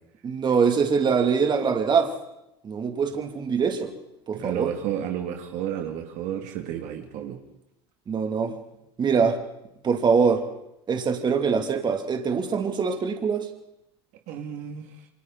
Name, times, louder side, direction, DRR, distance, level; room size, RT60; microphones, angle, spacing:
voice 1, 0.2-2.1 2.6-3.9 4.3-4.7 8.1-8.5 9.0-9.4 9.8-10.4 10.9-13.5, right 5 dB, 30° right, 5 dB, 2.7 m, -23 dB
voice 2, 4.3-7.4 14.3-14.9, right 10 dB, 60° right, 3 dB, 2.5 m, -32 dB
28.5 x 24.0 x 4.1 m, 0.84 s
hypercardioid pair, 95°, 14 cm